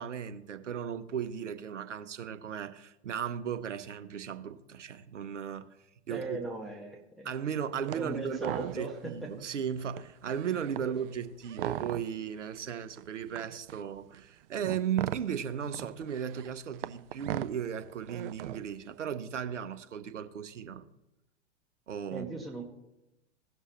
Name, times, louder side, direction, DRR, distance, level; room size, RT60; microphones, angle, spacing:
voice 1, 0.0-5.7 6.1-6.4 7.2-20.9 21.9-22.3, right 8 dB, 80° right, 10 dB, 0.8 m, -36 dB
voice 2, 6.1-7.3 7.9-9.3 10.8-11.0 22.1-22.6, right 2 dB, ahead, -2 dB, 1.3 m, -39 dB
sound 1, 7.9-8.1 8.3-9.1 9.5-9.6 9.9-12.3 13.0-18.8, right 14 dB, 50° right, 0.5 m, -39 dB
16.5 x 6.3 x 3.0 m, 0.90 s
hypercardioid pair, 110°, 36 cm